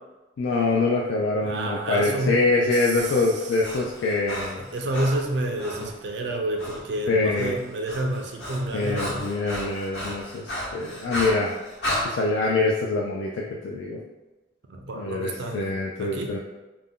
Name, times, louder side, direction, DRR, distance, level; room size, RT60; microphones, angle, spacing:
voice 1, 0.4-4.6 7.1-7.6 8.7-11.5 12.0-14.0 14.9-16.4, left 3 dB, 90° left, -2 dB, 0.3 m, -24 dB
voice 2, 1.4-2.4 2.7-3.1 4.6-9.2 14.7-16.3, right 1 dB, 70° right, 3 dB, 0.4 m, -29 dB
Breathing, 2.7-5.9 6.6-6.8 7.1-12.1, equal, 60° left, 0.9 m, -34 dB
2.5 x 2.1 x 3.5 m, 1.1 s
head